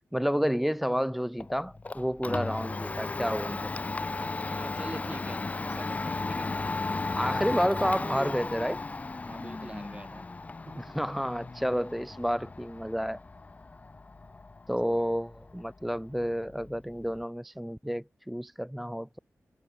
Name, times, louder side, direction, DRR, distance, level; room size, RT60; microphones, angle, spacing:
voice 1, 0.1-3.7 7.1-8.8 10.8-13.2 14.7-19.2, equal, ahead, 0.9 m, -30 dB
Domestic sounds home sounds, 1.4-17.2, left 3 dB, 25° left, 0.5 m, -36 dB
voice 2, 4.4-6.5 9.3-10.3 10.7-10.9, right 2 dB, 20° right, 4.7 m, -44 dB
wide cardioid pair, 110°, 5 cm